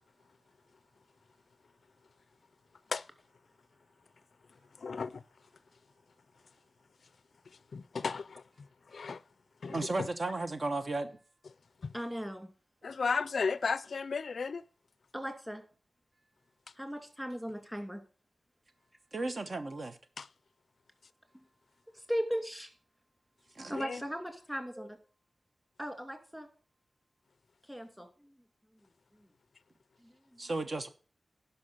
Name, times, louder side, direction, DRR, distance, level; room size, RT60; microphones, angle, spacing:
voice 1, 4.8-5.2 7.5-9.2 9.6-10.1 11.8-11.9 12.8-14.6 20.2-20.3 23.8-24.0, left 5 dB, 70° left, 0.4 m, -35 dB
voice 2, 9.7-11.1 19.1-20.0 23.5-23.7 30.4-30.9, right 2 dB, 50° right, 1.0 m, -34 dB
voice 3, 11.9-12.5 15.1-15.6 16.8-18.0 22.1-22.7 23.7-25.0 25.8-26.5 27.7-28.3, equal, 5° right, 2.7 m, -37 dB
11.0 x 5.7 x 6.5 m
wide cardioid pair, 90°, 0 cm